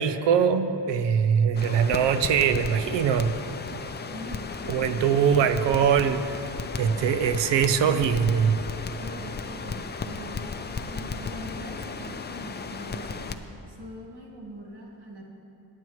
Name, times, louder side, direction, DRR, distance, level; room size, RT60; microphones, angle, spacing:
voice 1, 0.0-3.3 4.7-6.4 6.8-8.6, right 7 dB, 85° right, 10 dB, 0.7 m, -22 dB
Crackle, 1.5-13.3, left 4 dB, 25° left, 0.5 m, -35 dB
voice 2, 4.1-5.2 9.0-13.3 13.7-15.3, right 1 dB, 70° right, -2 dB, 1.9 m, -42 dB
20.5 x 7.6 x 3.1 m, 2.8 s
cardioid pair, 90°, 41 cm